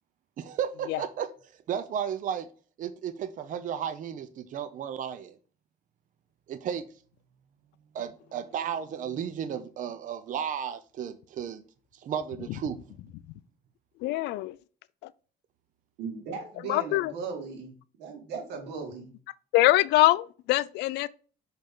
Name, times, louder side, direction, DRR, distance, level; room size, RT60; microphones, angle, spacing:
voice 1, 0.4-1.3 1.7-2.5 2.8-5.4 6.5-6.9 7.9-11.6 11.9-12.8, right 8 dB, 50° right, 0.6 m, -33 dB
voice 2, 14.0-14.6 15.0-15.1 16.7-17.1 19.5-21.1, left 17 dB, 85° left, 0.4 m, -23 dB
voice 3, 16.0-17.7 18.0-19.1, right 5 dB, 85° right, 2.2 m, -37 dB
5.8 x 5.4 x 3.8 m
cardioid pair, 110°, 17 cm